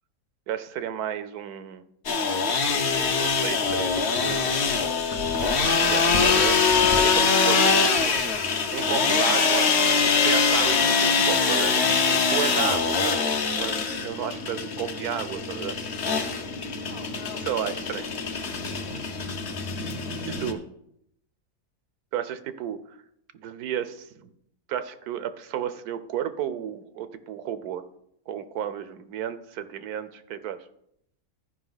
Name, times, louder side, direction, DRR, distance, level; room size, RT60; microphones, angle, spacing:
voice 1, 0.5-1.8 3.2-4.5 5.4-6.6 6.9-8.2 8.7-9.7 10.2-15.8 17.4-18.1 18.9-19.0 20.2-20.6 22.1-23.0 23.3-24.3 24.7-27.8 28.3-30.6, right 9 dB, 85° right, 12 dB, 1.2 m, -32 dB
sound 1, 2.1-20.5, left 5 dB, 50° left, 1.0 m, -23 dB
14.0 x 5.2 x 4.0 m, 0.76 s
omnidirectional pair, 1.6 m